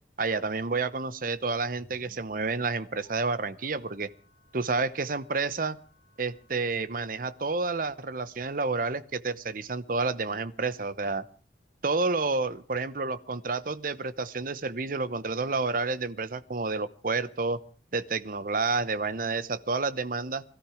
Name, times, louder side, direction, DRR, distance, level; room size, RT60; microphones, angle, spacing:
voice 1, 0.2-4.1 4.5-5.8 6.2-11.2 11.8-17.6 17.9-20.4, right 3 dB, 50° right, 16 dB, 0.8 m, -30 dB
sound 1, 1.7-7.5, left 1 dB, 55° left, 7.4 m, -61 dB
22.0 x 13.5 x 4.9 m, 0.43 s
head